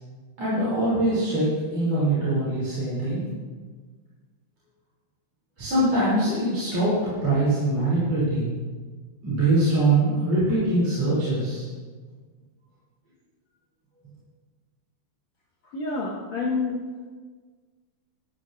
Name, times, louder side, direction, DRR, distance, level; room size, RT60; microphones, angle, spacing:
voice 1, 0.4-3.2 5.6-8.5 9.2-11.7, right 2 dB, 40° right, -10 dB, 4.3 m, -23 dB
voice 2, 15.7-16.8, left 3 dB, 75° left, -3 dB, 1.6 m, -28 dB
13.0 x 12.5 x 2.7 m, 1.5 s
omnidirectional pair, 4.9 m